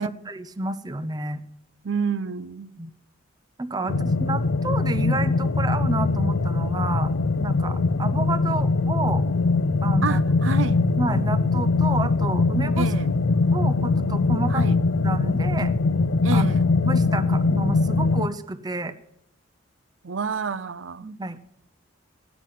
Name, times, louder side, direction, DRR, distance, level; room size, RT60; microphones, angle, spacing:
voice 1, 0.0-1.4 2.8-2.9 3.6-7.1 7.4-9.2 9.8-10.2 10.5-10.6 11.0-12.9 13.5-14.6 15.0-15.7 16.3-16.4 16.8-18.9 21.0-21.4, right 2 dB, 20° right, 0.6 m, -30 dB
voice 2, 1.8-2.7 3.8-4.2 10.0-10.8 12.8-13.1 14.5-14.8 16.2-16.7 20.0-21.1, right 5 dB, 70° right, 0.6 m, -29 dB
sound 1, 3.9-18.3, left 3 dB, 80° left, 0.5 m, -22 dB
16.5 x 6.1 x 9.2 m
head